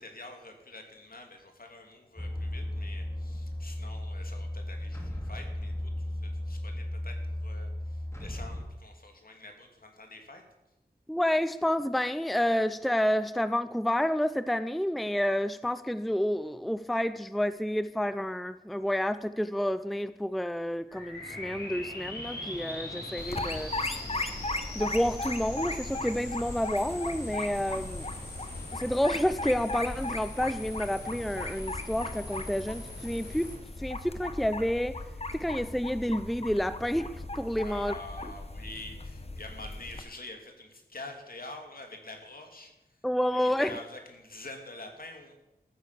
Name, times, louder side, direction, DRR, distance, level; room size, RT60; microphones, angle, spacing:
voice 1, 0.0-10.4 37.6-43.0 43.3-45.3, left 2 dB, 65° left, 3 dB, 2.7 m, -46 dB
sound 1, 2.2-8.6, left 1 dB, 15° left, 2.7 m, -35 dB
voice 2, 11.1-23.7 24.7-28.1 28.7-33.5 33.8-35.0 35.3-37.9 38.2-38.3 43.0-43.8, equal, ahead, 13 dB, 0.5 m, -29 dB
sound 2, 20.9-33.6, left 2 dB, 80° left, 4.3 m, -42 dB
Sonic Snap Sint-Laurens, 23.2-40.0, left 2 dB, 40° left, 1.2 m, -37 dB
14.0 x 9.0 x 6.8 m, 0.94 s
wide cardioid pair, 75°, 16 cm